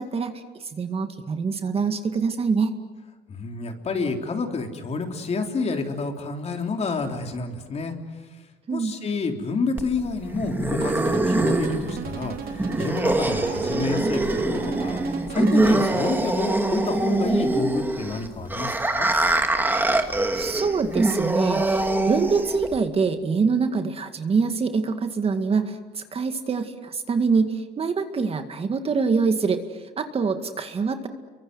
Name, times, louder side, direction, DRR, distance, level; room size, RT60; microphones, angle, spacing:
voice 1, 0.0-2.7 8.7-8.9 20.3-31.1, right 5 dB, 35° right, 7 dB, 2.0 m, -25 dB
voice 2, 3.3-7.9 8.7-19.1, left 4 dB, 40° left, 4 dB, 3.6 m, -29 dB
sound 1, 9.8-22.8, right 2 dB, 10° right, 2.4 m, -24 dB
sound 2, 10.8-16.4, right 7 dB, 60° right, 3.3 m, -36 dB
29.5 x 24.0 x 7.9 m, 1.3 s
cardioid pair, 110°, 17 cm